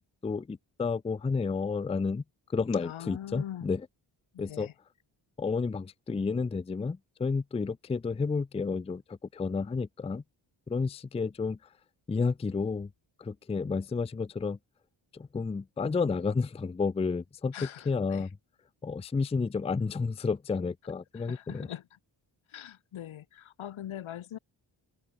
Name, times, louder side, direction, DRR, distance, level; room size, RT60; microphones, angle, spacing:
voice 1, 0.0-2.2 2.5-3.8 4.4-4.7 5.4-10.2 10.7-11.6 12.1-12.9 13.2-14.6 15.1-17.5 17.9-18.3 18.8-21.7, left 4 dB, 15° left, 0.4 m, -31 dB
voice 2, 2.8-3.7 4.3-4.7 17.5-18.3 21.1-22.0 22.5-24.4, left 11 dB, 85° left, 1.7 m, -42 dB
cardioid pair, 50°, 47 cm